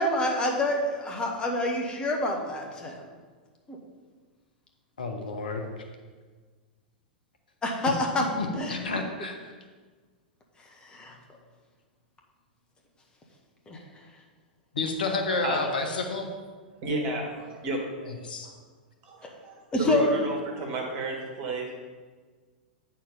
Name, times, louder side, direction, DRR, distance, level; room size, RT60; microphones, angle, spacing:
voice 1, 0.0-3.0 3.7-3.8 7.6-8.2 8.5-8.8 10.9-11.1 13.7-13.8 19.7-20.1, left 2 dB, 20° left, 1 dB, 1.4 m, -27 dB
voice 2, 5.0-5.7 7.8-7.9 8.4-9.5 14.7-16.3 18.0-18.5, left 3 dB, 70° left, 4 dB, 1.1 m, -30 dB
voice 3, 16.8-17.9 18.4-18.5 19.0-21.7, right 2 dB, 45° right, 1 dB, 2.0 m, -32 dB
8.9 x 4.5 x 5.5 m, 1.5 s
figure-of-eight pair, 95°, 5 cm